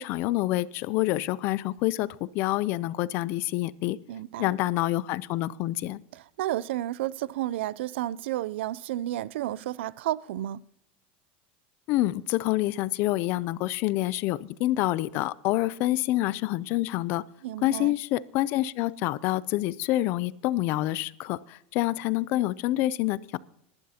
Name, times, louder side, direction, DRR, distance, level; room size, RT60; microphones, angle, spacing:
voice 1, 0.0-4.0 4.4-6.0 11.9-17.2 17.6-23.4, left 16 dB, 35° left, 0.3 m, -27 dB
voice 2, 4.1-4.5 6.1-10.6 17.4-17.9, right 14 dB, 85° right, 0.4 m, -32 dB
20.5 x 11.5 x 2.8 m
supercardioid pair, 175°, 6 cm